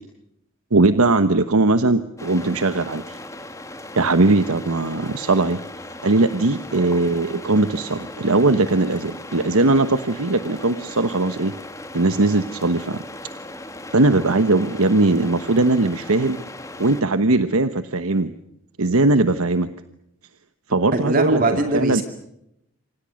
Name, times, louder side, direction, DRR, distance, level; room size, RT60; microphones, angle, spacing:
voice 1, 0.7-3.2 4.0-5.6 6.0-11.5 11.9-13.0 13.9-16.4 16.8-18.3 18.8-19.7 20.7-21.4 21.7-22.0, right 2 dB, 85° right, 11 dB, 1.2 m, -19 dB
sound 1, 2.2-17.0, left 1 dB, 15° left, 2.1 m, -38 dB
voice 2, 20.9-22.0, right 2 dB, 40° right, 6 dB, 2.4 m, -21 dB
27.5 x 26.0 x 6.5 m, 0.81 s
head